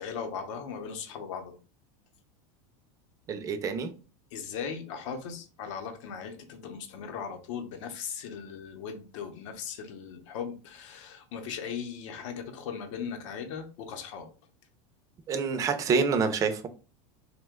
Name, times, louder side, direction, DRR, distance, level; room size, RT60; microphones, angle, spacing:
voice 1, 0.0-1.6 4.3-14.3, left 6 dB, 75° left, 0.7 m, -38 dB
voice 2, 3.3-3.9 15.3-16.7, right 5 dB, 20° right, 0.4 m, -27 dB
2.9 x 2.1 x 3.4 m
supercardioid pair, 150°, 16 cm